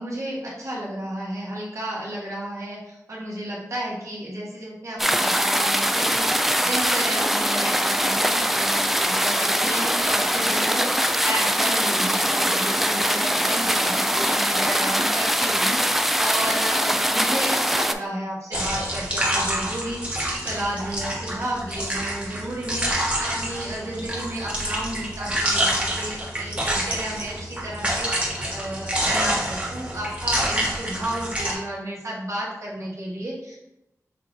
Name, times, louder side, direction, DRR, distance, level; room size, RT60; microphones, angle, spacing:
voice 1, 0.0-33.6, right 1 dB, 60° right, -5 dB, 1.6 m, -32 dB
sound 1, 5.0-17.9, equal, 5° right, 0.3 m, -22 dB
sound 2, 18.5-31.6, right 1 dB, 20° right, 1.3 m, -27 dB
5.9 x 2.6 x 3.1 m, 0.90 s
wide cardioid pair, 65°, 6 cm